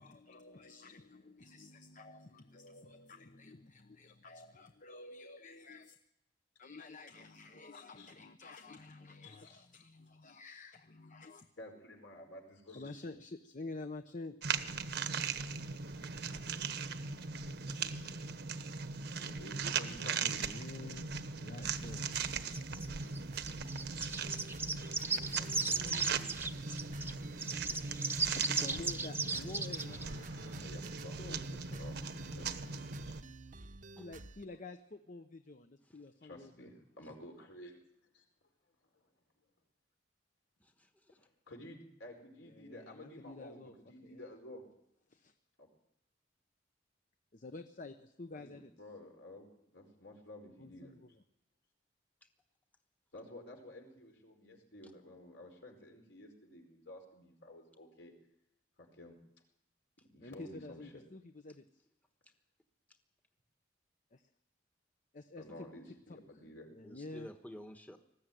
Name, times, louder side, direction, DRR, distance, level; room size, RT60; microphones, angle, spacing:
voice 1, 0.0-6.0 6.6-11.5 12.7-14.4 17.8-18.0 18.5-18.6 20.2-22.1 28.3-30.1 31.2-31.4 34.0-36.7 42.5-43.7 44.0-44.3 45.1-45.3 47.3-48.7 50.6-51.1 60.2-61.6 64.1-64.2 65.1-65.4 66.7-67.3, left 2 dB, 45° left, 0.9 m, -49 dB
voice 2, 7.7-8.1 9.2-9.8 11.6-13.1 19.2-20.4 25.3-26.1 29.7-32.6 33.0-33.1 36.2-37.8 38.1-38.2 38.9-39.1 41.2-44.6 45.6-45.7 48.3-50.9 53.1-58.1 58.8-59.2 60.1-61.0 65.4-66.7, left 1 dB, 70° left, 4.9 m, -52 dB
sound 1, 14.4-33.2, right 5 dB, 65° right, 1.1 m, -39 dB
sound 2, 21.6-34.5, right 2 dB, 45° right, 0.9 m, -51 dB
sound 3, 22.5-27.1 27.4-30.0, right 4 dB, 15° right, 0.9 m, -36 dB
voice 3, 40.6-41.3 66.8-68.0, equal, 10° left, 1.2 m, -51 dB
20.5 x 15.0 x 9.3 m
head